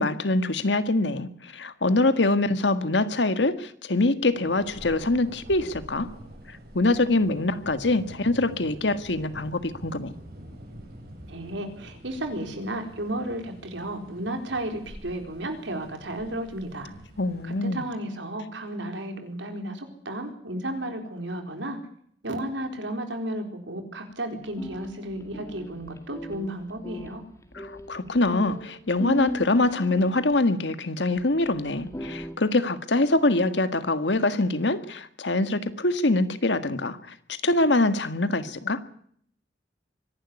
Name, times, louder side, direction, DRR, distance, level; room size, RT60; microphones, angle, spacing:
voice 1, 0.0-6.1 6.5-10.1 17.2-17.8 27.5-38.8, left 2 dB, 75° left, 11 dB, 1.7 m, -24 dB
Thunder, 4.3-17.9, equal, 55° right, 7.3 m, -46 dB
voice 2, 11.3-16.9 17.4-21.8 22.2-27.2, right 1 dB, 90° right, 6 dB, 4.2 m, -33 dB
sound 1, 24.5-30.4 31.2-31.3 31.7-32.4, equal, 15° left, 2.1 m, -36 dB
24.5 x 11.5 x 9.6 m, 0.65 s
head